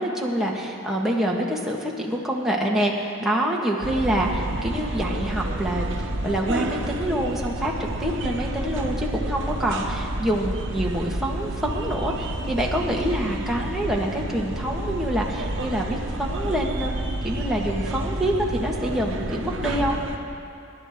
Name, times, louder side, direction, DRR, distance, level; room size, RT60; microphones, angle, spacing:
voice 1, 0.0-6.0 6.2-7.7 8.0-16.9 17.2-20.0, right 1 dB, ahead, -3 dB, 1.5 m, -26 dB
sound 1, 3.8-20.2, right 1 dB, 65° right, 1.1 m, -30 dB
26.5 x 11.5 x 3.7 m, 2.6 s
head